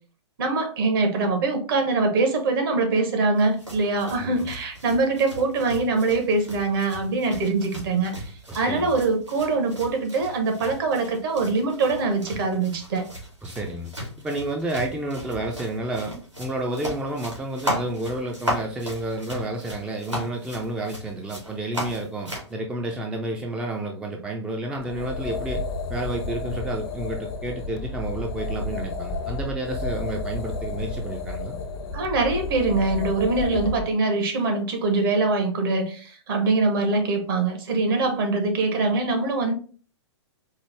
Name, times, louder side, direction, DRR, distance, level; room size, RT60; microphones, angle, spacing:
voice 1, 0.4-13.1 31.9-39.5, right 3 dB, 50° right, 5 dB, 1.0 m, -23 dB
sound 1, 3.4-22.5, equal, 90° right, 1.9 m, -36 dB
voice 2, 8.5-8.9 13.4-13.9 14.2-25.6 25.9-31.6, right 1 dB, 5° right, 1 dB, 0.3 m, -30 dB
sound 2, 24.8-33.9, left 2 dB, 55° left, 0.6 m, -31 dB
4.5 x 2.0 x 3.3 m, 0.40 s
figure-of-eight pair, 110°, 15 cm